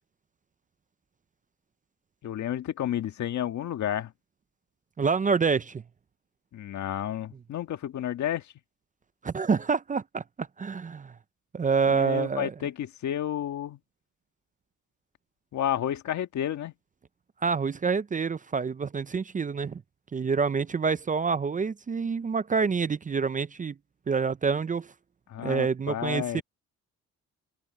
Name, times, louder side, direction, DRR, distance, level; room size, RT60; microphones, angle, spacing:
voice 1, 2.2-4.1 6.5-8.4 11.8-13.8 15.5-16.7 25.3-26.4, left 11 dB, 70° left, 1.8 m, -31 dB
voice 2, 5.0-5.8 9.2-11.1 11.5-12.5 17.4-19.8 20.1-23.7 24.1-24.9 25.4-26.4, right 5 dB, 25° right, 0.6 m, -27 dB
cardioid pair, 90°, 30 cm